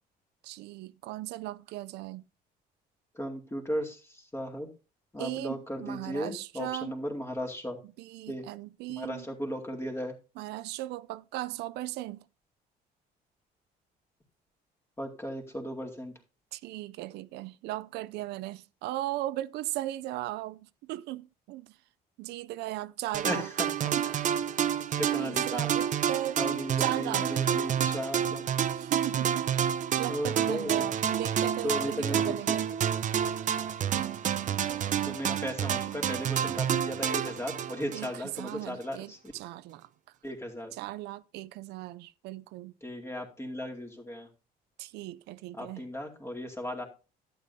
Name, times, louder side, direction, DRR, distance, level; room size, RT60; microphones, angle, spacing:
voice 1, 0.4-2.2 5.2-7.0 8.0-9.3 10.4-12.2 16.5-21.8 22.2-23.5 23.9-24.2 25.2-26.4 26.8-27.4 28.7-29.5 30.0-32.7 37.9-39.9 40.7-42.7 44.8-45.8, right 15 dB, 85° right, 0.4 m, -37 dB
voice 2, 3.2-4.7 5.1-7.8 8.3-8.4 9.0-10.1 15.0-16.1 23.2-23.9 25.0-25.7 26.4-28.4 30.1-30.9 31.6-32.3 33.9-34.1 35.0-39.2 40.2-40.7 42.8-44.3 45.6-46.8, equal, 15° left, 2.3 m, -36 dB
sound 1, 23.1-38.6, right 9 dB, 50° right, 0.8 m, -29 dB
11.5 x 9.3 x 2.7 m
cardioid pair, 110°, 17 cm